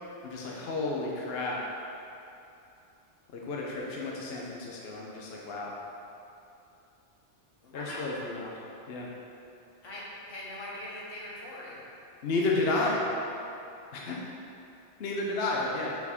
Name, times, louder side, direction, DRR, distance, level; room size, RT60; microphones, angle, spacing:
voice 1, 0.2-1.7 3.3-5.7 7.7-8.5 8.9-9.1 12.2-13.0 13.9-14.2 15.0-15.9, left 2 dB, 60° left, -3 dB, 1.0 m, -31 dB
voice 2, 7.6-8.1 9.8-11.8, left 1 dB, 90° left, -6 dB, 1.8 m, -42 dB
6.9 x 4.5 x 4.3 m, 2.7 s
omnidirectional pair, 1.2 m